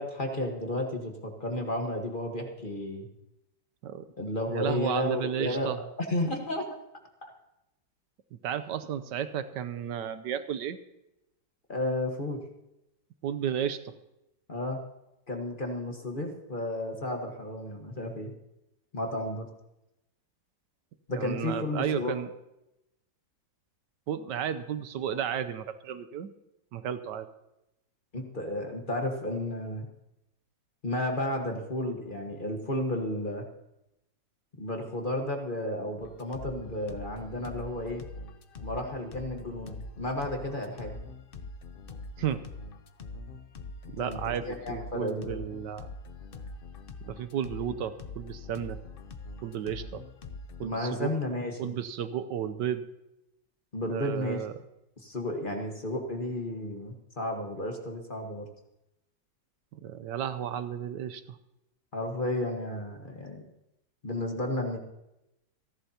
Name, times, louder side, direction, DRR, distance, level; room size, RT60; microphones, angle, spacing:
voice 1, 0.0-3.1 4.2-5.7 6.1-6.6 7.2-7.3 11.7-12.4 14.5-14.8 15.3-18.3 18.9-19.5 21.1-22.2 28.1-29.9 30.8-33.4 34.6-38.0 38.6-40.9 44.0-45.4 50.6-51.7 53.7-54.4 55.0-58.5 61.9-63.4 64.0-64.8, left 1 dB, 30° left, 2 dB, 1.4 m, -32 dB
voice 2, 4.5-5.8 8.3-10.8 13.2-13.9 21.1-22.3 24.1-26.3 26.7-27.3 42.2-42.4 43.9-45.9 47.1-48.8 49.4-50.0 50.6-51.1 51.6-52.8 53.9-54.5 59.7-61.4, right 9 dB, 75° right, 12 dB, 1.3 m, -33 dB
sound 1, 36.0-50.7, left 3 dB, 55° left, 0.6 m, -43 dB
27.5 x 11.5 x 2.9 m, 0.90 s
omnidirectional pair, 1.9 m